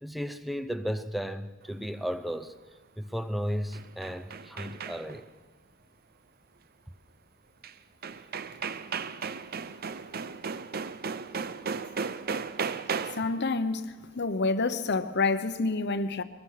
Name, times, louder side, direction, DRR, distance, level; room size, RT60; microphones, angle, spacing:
voice 1, 0.0-2.5 3.0-5.2, equal, ahead, 0.7 m, -34 dB
sound 1, 3.5-5.3 7.6-7.7 8.0-13.4, right 5 dB, 45° right, 0.6 m, -35 dB
voice 2, 13.1-13.8 14.2-16.2, left 3 dB, 55° left, 0.9 m, -28 dB
22.5 x 20.0 x 5.8 m
head